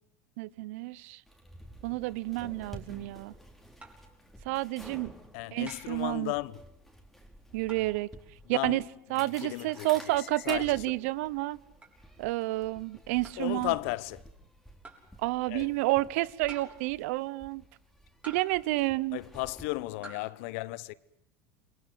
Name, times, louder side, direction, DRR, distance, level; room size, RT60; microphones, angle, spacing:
voice 1, 0.4-1.2 1.8-3.3 4.4-5.1 5.5-6.3 7.5-8.1 8.5-8.8 9.1-11.6 12.2-13.7 15.2-17.6 18.2-19.2, right 19 dB, 75° right, 0.9 m, -30 dB
sound 1, 1.3-19.6, equal, ahead, 4.6 m, -52 dB
sound 2, 3.8-4.1 5.7-6.1 7.7-8.0 9.7-9.9 11.8-12.0 13.2-13.5 14.8-15.1 16.5-16.9 18.2-18.7 20.0-20.3, right 3 dB, 20° right, 6.7 m, -49 dB
voice 2, 5.3-6.6 8.5-9.9 10.5-10.8 13.4-14.2 15.5-15.7 19.1-20.9, left 20 dB, 75° left, 1.1 m, -35 dB
28.0 x 22.5 x 7.9 m
supercardioid pair, 105°, 8 cm